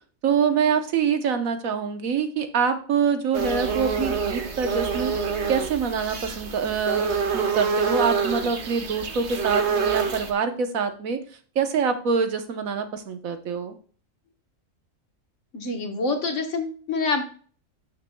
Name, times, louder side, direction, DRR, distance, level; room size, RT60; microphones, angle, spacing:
voice 1, 0.2-5.1 5.5-11.2 11.5-13.7, right 6 dB, 75° right, 7 dB, 1.4 m, -25 dB
sound 1, 3.3-10.3, right 5 dB, 55° right, 1.4 m, -27 dB
voice 2, 15.5-17.2, left 3 dB, 60° left, 4 dB, 1.6 m, -26 dB
12.0 x 6.5 x 2.2 m, 0.43 s
omnidirectional pair, 1.4 m